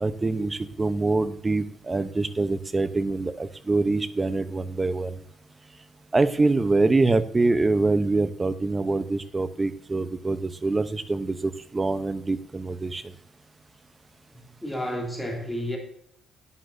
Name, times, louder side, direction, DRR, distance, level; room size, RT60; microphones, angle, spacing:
voice 1, 0.0-5.1 6.1-13.0, right 3 dB, 25° right, 12 dB, 0.8 m, -25 dB
voice 2, 14.6-15.8, equal, 5° left, -1 dB, 2.5 m, -30 dB
11.0 x 10.0 x 2.7 m, 0.70 s
cardioid pair, 90°, 0 cm